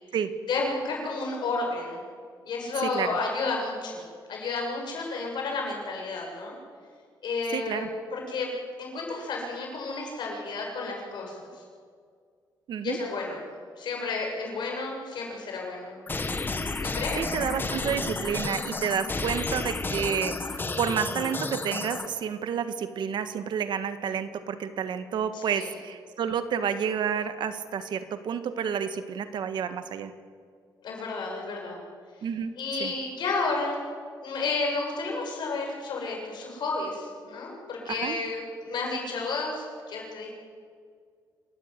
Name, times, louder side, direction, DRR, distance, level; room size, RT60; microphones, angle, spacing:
voice 1, 0.5-2.0 2.5-6.6 7.2-8.5 8.8-11.6 12.8-13.4 13.8-16.0 16.8-17.2 25.3-25.7 30.8-31.8 32.6-33.8 34.2-40.3, left 3 dB, 70° left, 0 dB, 7.2 m, -31 dB
voice 2, 7.5-7.9 12.7-13.0 17.2-30.1 32.2-32.5 32.8-32.9 37.9-38.2, right 7 dB, 75° right, 10 dB, 1.6 m, -30 dB
sound 1, 16.1-22.1, left 3 dB, 25° left, 1.5 m, -32 dB
27.0 x 13.5 x 9.5 m, 2.1 s
cardioid pair, 105°, 8 cm